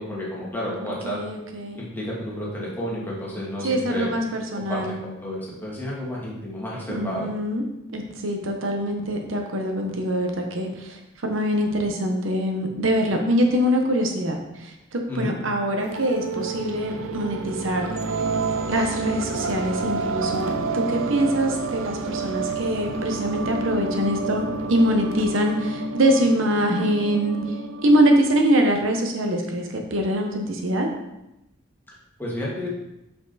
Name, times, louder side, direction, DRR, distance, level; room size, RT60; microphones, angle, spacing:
voice 1, 0.0-1.2 1.8-4.3 4.7-7.3 15.1-15.3 32.2-32.7, equal, 10° left, -5 dB, 1.6 m, -31 dB
voice 2, 1.0-1.8 3.6-4.9 6.9-7.6 7.9-11.0 11.2-17.9 18.7-27.4 27.8-30.9, equal, 75° right, 3 dB, 0.8 m, -23 dB
sound 1, 15.7-28.7, right 3 dB, 90° right, 0.5 m, -29 dB
5.3 x 4.7 x 4.0 m, 0.89 s
head